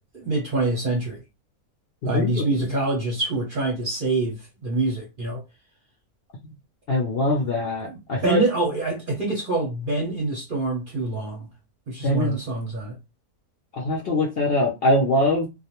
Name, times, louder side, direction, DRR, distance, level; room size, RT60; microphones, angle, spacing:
voice 1, 0.1-1.2 2.0-5.4 7.8-11.5 11.9-13.0, right 2 dB, 50° right, 0.7 m, -26 dB
voice 2, 2.1-2.4 6.9-8.4 12.0-12.4 13.7-15.5, left 1 dB, 60° left, 0.6 m, -22 dB
2.3 x 2.2 x 2.8 m
omnidirectional pair, 1.5 m